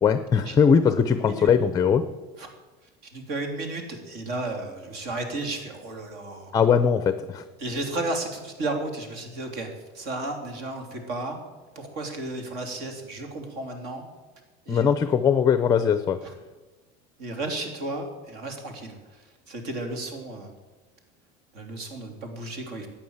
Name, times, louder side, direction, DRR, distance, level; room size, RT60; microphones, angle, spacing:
voice 1, 0.0-2.1 6.5-7.4 14.7-16.2, left 7 dB, 20° left, 11 dB, 0.6 m, -20 dB
voice 2, 1.1-1.5 2.4-2.5 3.0-6.5 7.6-11.4 11.7-14.1 14.6-14.8 16.2-16.3 17.2-20.5 21.5-22.9, right 2 dB, 55° right, 4 dB, 3.2 m, -33 dB
13.0 x 8.8 x 7.9 m, 1.2 s
cardioid pair, 145°, 19 cm